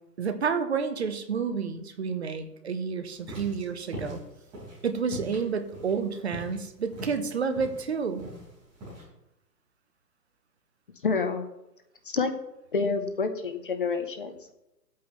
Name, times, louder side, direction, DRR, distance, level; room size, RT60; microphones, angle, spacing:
voice 1, 0.2-4.2 4.8-8.2, right 5 dB, 40° right, 9 dB, 0.9 m, -30 dB
sound 1, 3.2-9.0, equal, 10° right, 4.5 m, -41 dB
voice 2, 11.0-11.5 12.1-12.3 12.7-14.4, left 4 dB, 30° left, 7 dB, 0.8 m, -28 dB
14.0 x 8.4 x 3.1 m, 0.89 s
hypercardioid pair, 170°, 50 cm